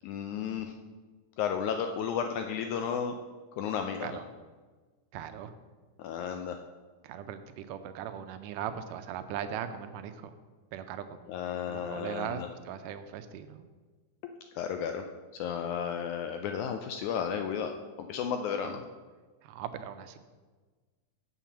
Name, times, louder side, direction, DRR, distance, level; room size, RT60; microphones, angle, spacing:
voice 1, 0.0-0.7 1.4-3.2 3.5-4.2 6.0-6.6 11.3-12.5 14.6-15.0 15.3-17.7 18.0-18.8, left 7 dB, 80° left, 6 dB, 1.7 m, -33 dB
voice 2, 5.1-5.5 7.0-10.3 10.7-13.6 18.6-18.8 19.4-20.2, right 9 dB, 80° right, 10 dB, 2.0 m, -39 dB
7.4 x 5.9 x 7.1 m, 1.4 s
omnidirectional pair, 3.9 m